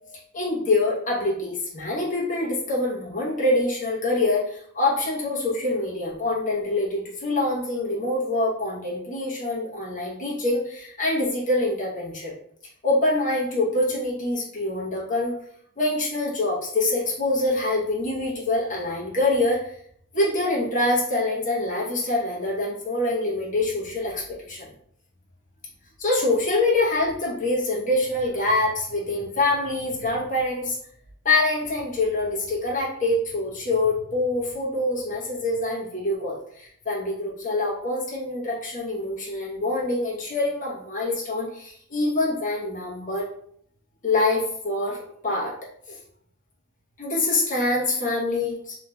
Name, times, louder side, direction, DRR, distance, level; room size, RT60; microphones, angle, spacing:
voice 1, 0.1-12.3 12.8-15.3 15.8-19.7 20.1-24.7 26.0-30.8 31.2-43.3 44.0-45.5 45.9-46.0 47.0-48.8, left 2 dB, 35° left, -5 dB, 0.9 m, -25 dB
3.0 x 2.8 x 2.3 m, 0.65 s
head